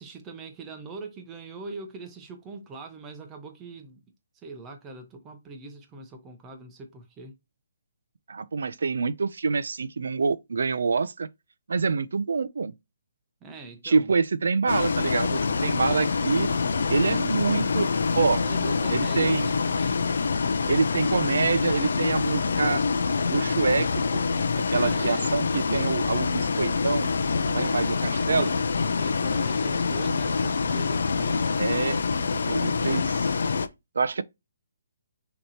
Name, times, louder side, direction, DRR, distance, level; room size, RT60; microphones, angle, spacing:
voice 1, 0.0-4.0 4.3-7.4 13.4-14.1 18.4-20.0 24.7-25.3 27.4-27.9 29.0-31.5, right 3 dB, 10° right, 0.7 m, -42 dB
voice 2, 8.3-11.3 11.7-12.7 13.8-16.5 16.9-17.9 18.1-18.4 18.9-19.5 20.7-22.8 23.3-24.3 24.7-27.1 27.5-28.5 31.6-32.0 32.3-33.4 34.0-34.2, right 4 dB, 75° right, 0.5 m, -26 dB
Bus, 14.7-33.7, left 4 dB, 65° left, 0.6 m, -26 dB
6.4 x 3.0 x 2.8 m
hypercardioid pair, 175°, 0 cm